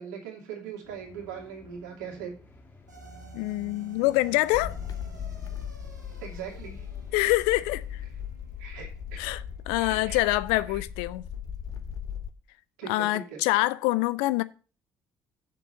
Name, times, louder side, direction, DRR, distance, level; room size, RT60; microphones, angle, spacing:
voice 1, 0.0-2.3 6.2-6.9 8.6-9.2 9.8-10.2 10.7-10.8 12.8-13.4, right 7 dB, 70° right, 2.5 m, -40 dB
sound 1, 0.8-7.3, left 1 dB, 20° left, 2.8 m, -53 dB
sound 2, 2.9-11.4, right 6 dB, 90° right, 1.4 m, -53 dB
voice 2, 3.3-4.8 7.1-8.0 9.2-11.2 12.9-14.4, left 18 dB, 65° left, 0.5 m, -25 dB
sound 3, 4.5-12.3, left 8 dB, 40° left, 0.9 m, -38 dB
6.9 x 6.1 x 7.5 m
figure-of-eight pair, 50°, 9 cm